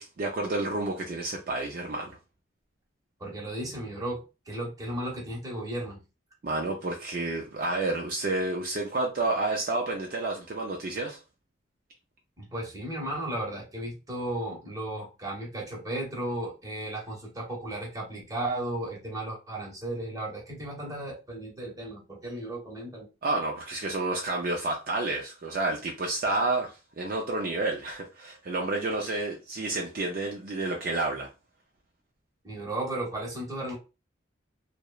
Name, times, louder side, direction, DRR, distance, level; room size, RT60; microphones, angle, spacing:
voice 1, 0.0-2.2 6.4-11.2 23.2-31.3, right 2 dB, 50° right, 0.4 m, -30 dB
voice 2, 3.2-6.0 12.4-23.1 32.4-33.8, right 1 dB, 20° right, 0.8 m, -35 dB
2.9 x 2.0 x 2.2 m
head